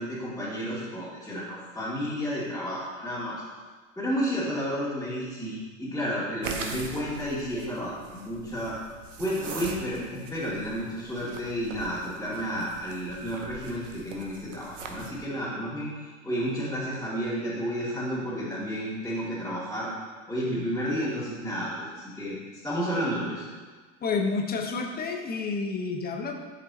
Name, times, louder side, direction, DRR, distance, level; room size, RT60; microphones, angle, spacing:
voice 1, 0.0-3.4 4.0-8.7 9.2-19.9 20.3-22.4 22.6-23.4, equal, 5° left, -12 dB, 2.4 m, -31 dB
sound 1, 6.4-15.2, right 4 dB, 85° right, 1.0 m, -42 dB
voice 2, 24.0-26.4, left 4 dB, 25° left, 3 dB, 1.1 m, -29 dB
11.5 x 5.2 x 2.9 m, 1.4 s
hypercardioid pair, 85°, 37 cm